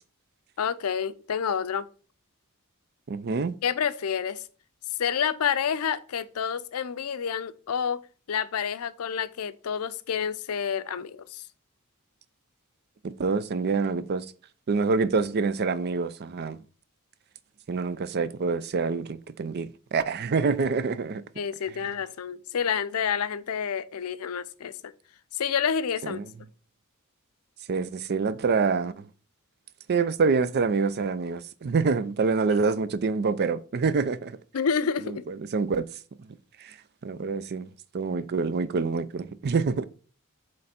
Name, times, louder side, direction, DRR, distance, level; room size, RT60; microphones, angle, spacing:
voice 1, 0.6-1.9 3.6-4.4 5.0-8.0 8.3-11.5 21.4-24.9 25.3-26.2 34.5-35.2, left 7 dB, 90° left, 0.5 m, -29 dB
voice 2, 3.1-3.5 13.0-14.3 14.7-16.6 17.7-21.2 26.0-26.2 27.7-29.1 29.9-34.3 35.1-35.9 36.6-36.7 37.0-37.7 37.9-39.8, right 4 dB, 50° right, 0.4 m, -26 dB
7.8 x 3.3 x 4.2 m
head